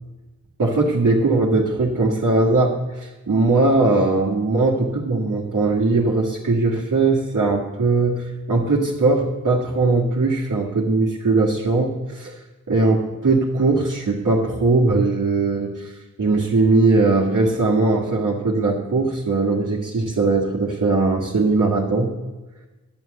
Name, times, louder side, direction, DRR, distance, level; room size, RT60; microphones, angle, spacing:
voice 1, 0.6-12.4 12.7-22.1, right 3 dB, 70° right, -6 dB, 1.8 m, -20 dB
10.0 x 6.9 x 7.9 m, 1.2 s
cardioid pair, 45°, 32 cm